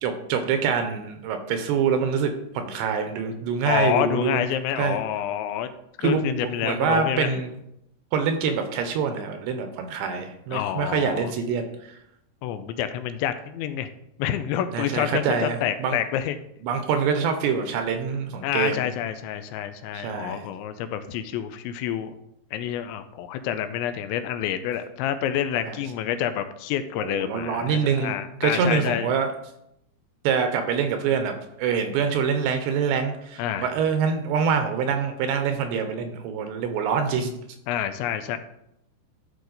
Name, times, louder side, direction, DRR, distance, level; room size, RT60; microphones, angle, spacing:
voice 1, 0.0-4.4 4.8-5.0 6.0-7.6 8.1-12.0 14.7-16.0 16.6-18.9 19.9-20.5 25.6-25.8 27.0-28.2 28.4-29.3 30.2-37.3, right 6 dB, 80° right, 7 dB, 2.7 m, -25 dB
voice 2, 3.7-5.7 6.0-7.4 10.5-11.3 12.4-13.9 14.2-16.4 18.4-22.1 22.5-29.1 33.4-33.7 37.7-38.4, left 10 dB, 85° left, 10 dB, 2.8 m, -28 dB
13.0 x 4.9 x 3.9 m, 0.80 s
omnidirectional pair, 5.4 m